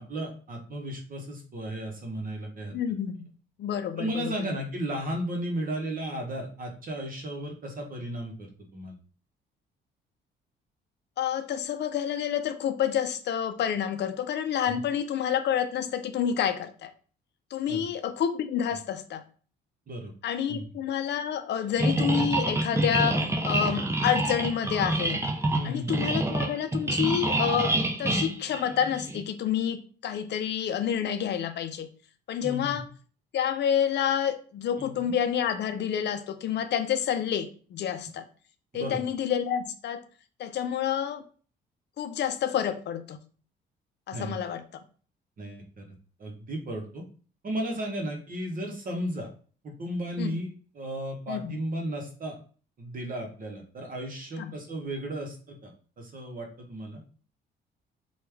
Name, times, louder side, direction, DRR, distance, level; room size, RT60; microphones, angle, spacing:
voice 1, 0.0-2.7 4.0-8.9 14.7-14.8 17.7-17.9 19.9-20.1 20.5-20.6 25.5-25.9 32.4-32.8 34.8-34.9 38.7-39.0 44.1-44.4 45.4-45.9 46.2-47.0 47.4-49.3 49.6-50.5 50.7-52.4 52.8-55.7 56.0-57.0, right 1 dB, 45° right, 2 dB, 0.9 m, -34 dB
voice 2, 2.7-3.3 3.6-4.5 11.2-16.9 17.5-19.2 20.2-25.2 25.6-27.7 28.0-31.9 32.3-32.8 33.3-38.2 38.7-40.0 40.4-41.2 42.0-43.2 44.1-44.6 50.2-50.4 51.3-51.6 54.4-54.5, left 9 dB, 60° left, 9 dB, 0.4 m, -29 dB
sound 1, 21.8-29.2, right 2 dB, 15° right, 0.4 m, -27 dB
3.1 x 2.3 x 3.3 m, 0.41 s
cardioid pair, 90°, 20 cm